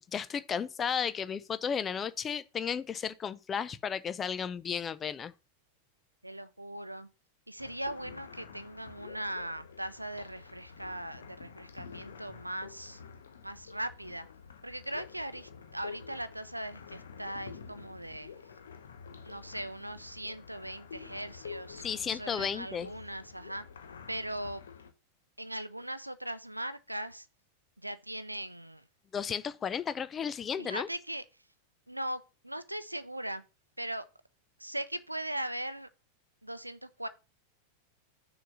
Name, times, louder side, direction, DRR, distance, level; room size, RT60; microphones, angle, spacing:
voice 1, 0.0-5.3 21.8-22.9 29.1-30.9, left 7 dB, 20° left, 0.5 m, -34 dB
voice 2, 6.2-7.1 7.5-13.0 13.4-14.3 14.6-18.3 19.2-23.6 24.1-24.6 25.4-27.3 27.8-28.8 30.6-31.2 31.9-33.4 33.8-34.0 34.6-35.9 36.4-37.1, right 1 dB, 85° right, 0.5 m, -39 dB
sound 1, 7.6-24.9, left 6 dB, 65° left, 0.8 m, -49 dB
6.4 x 4.0 x 6.0 m
figure-of-eight pair, 90°, 0 cm